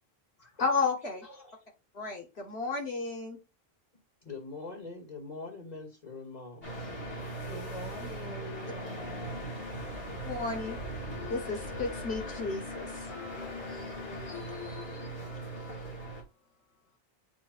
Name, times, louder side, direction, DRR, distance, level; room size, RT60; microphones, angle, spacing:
voice 1, 0.6-1.3 1.9-3.4 10.2-15.9, left 4 dB, 90° left, 2.1 m, -35 dB
voice 2, 4.2-6.7, left 3 dB, 40° left, 2.3 m, -43 dB
sound 1, 6.6-16.2, right 1 dB, 70° left, 2.7 m, -39 dB
voice 3, 7.5-9.5, left 2 dB, 5° right, 1.0 m, -45 dB
8.5 x 3.0 x 4.4 m
omnidirectional pair, 1.0 m